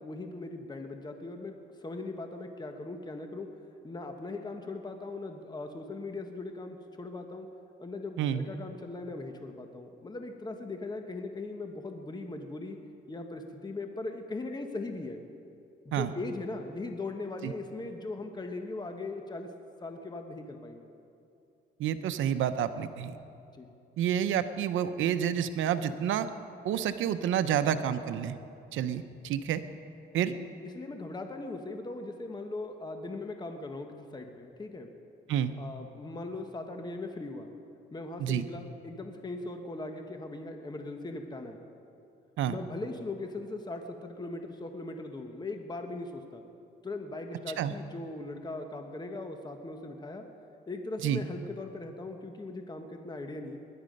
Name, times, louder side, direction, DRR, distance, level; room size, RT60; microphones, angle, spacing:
voice 1, 0.0-3.5 3.8-7.5 7.8-12.8 13.1-15.2 15.8-19.5 19.8-20.8 23.6-23.7 30.3-30.4 30.6-34.9 35.6-37.5 37.9-41.6 42.5-46.4 46.8-50.2 50.7-53.6, left 2 dB, 20° left, 5 dB, 1.2 m, -39 dB
voice 2, 21.8-23.1 24.0-26.3 26.6-28.4 28.7-29.6 30.1-30.3 35.3-35.5 38.2-38.5 42.4-42.6 47.6-47.7 51.0-51.2, right 9 dB, 80° right, 11 dB, 0.7 m, -29 dB
20.5 x 11.0 x 5.3 m, 2.6 s
cardioid pair, 90°, 20 cm